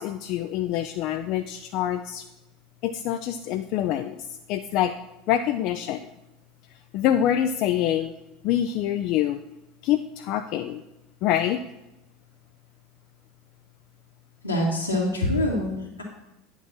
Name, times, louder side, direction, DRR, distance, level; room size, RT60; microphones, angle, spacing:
voice 1, 0.0-2.2 2.8-4.9 5.3-6.1 6.9-8.1 8.4-9.4 9.8-10.8 11.2-11.6, left 11 dB, 50° left, 8 dB, 0.4 m, -25 dB
voice 2, 14.4-16.0, left 1 dB, 85° left, -3 dB, 2.1 m, -25 dB
9.2 x 5.9 x 4.2 m, 0.92 s
figure-of-eight pair, 70°, 0 cm